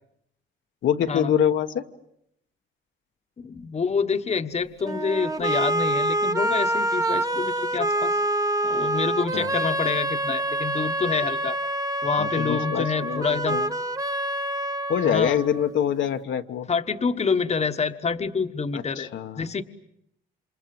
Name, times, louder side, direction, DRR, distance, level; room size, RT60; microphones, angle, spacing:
voice 1, 0.8-1.8 9.3-9.5 12.2-13.7 14.9-16.7 18.7-19.5, left 9 dB, 70° left, 5 dB, 1.4 m, -25 dB
voice 2, 3.4-8.2 8.6-11.6 12.0-13.6 15.0-15.4 16.7-19.1 19.4-19.6, left 5 dB, 35° left, 8 dB, 1.3 m, -27 dB
sound 1, 4.8-15.8, right 1 dB, 20° right, 1.2 m, -26 dB
28.0 x 27.0 x 7.9 m, 0.78 s
cardioid pair, 90°, 20 cm